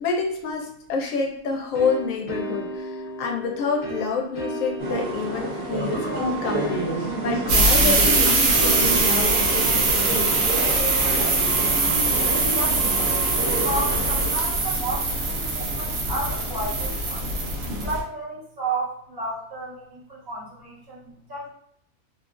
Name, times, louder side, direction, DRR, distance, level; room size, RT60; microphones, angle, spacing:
voice 1, 0.0-10.4, left 5 dB, 75° left, 1 dB, 1.0 m, -28 dB
sound 1, 1.7-12.2, right 1 dB, 45° left, 0.4 m, -35 dB
sound 2, 4.8-14.3, right 1 dB, 45° right, 0.9 m, -29 dB
sound 3, 7.5-18.0, right 3 dB, 85° right, 1.1 m, -22 dB
voice 2, 12.5-17.2 17.8-21.5, right 2 dB, 20° right, -5 dB, 0.7 m, -32 dB
2.9 x 2.3 x 2.4 m, 0.71 s
omnidirectional pair, 1.4 m